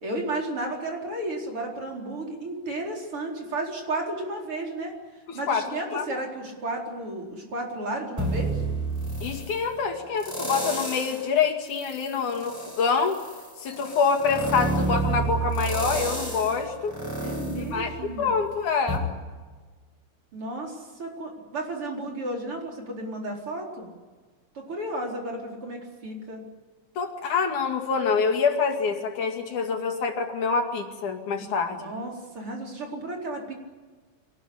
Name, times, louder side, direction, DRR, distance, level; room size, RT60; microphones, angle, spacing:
voice 1, 0.0-5.0 5.3-8.6 17.2-18.3 20.3-23.9 24.6-26.4 31.8-33.5, right 1 dB, 45° right, 0 dB, 5.1 m, -33 dB
voice 2, 5.3-5.7 5.9-6.2 9.2-13.2 13.6-17.0 17.6-17.9 18.2-19.0 27.0-31.9, left 5 dB, 80° left, 4 dB, 3.8 m, -26 dB
sound 1, 8.2-9.6 10.2-11.3 11.7-18.4 18.9-19.0, right 2 dB, 5° right, 6.6 m, -30 dB
26.0 x 19.0 x 10.0 m, 1.4 s
omnidirectional pair, 3.5 m